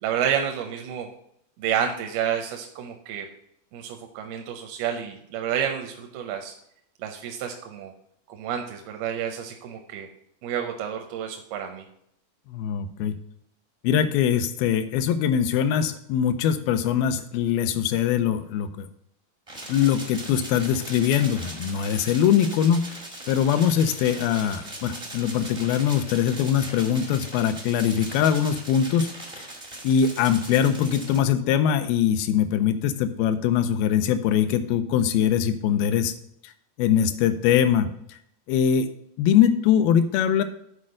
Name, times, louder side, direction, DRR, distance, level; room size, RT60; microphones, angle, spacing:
voice 1, 0.0-1.1 1.6-3.3 3.7-6.5 7.0-7.9 8.3-10.1 10.4-11.9, right 8 dB, 85° right, 4 dB, 2.6 m, -29 dB
voice 2, 12.5-13.1 13.8-18.9 19.7-23.0 23.3-29.1 29.8-36.1 36.8-37.9 38.5-38.9 39.2-40.4, left 9 dB, 85° left, 9 dB, 2.4 m, -22 dB
sound 1, 19.5-31.2, right 1 dB, 65° right, 0.3 m, -40 dB
8.5 x 4.3 x 6.3 m, 0.73 s
omnidirectional pair, 4.3 m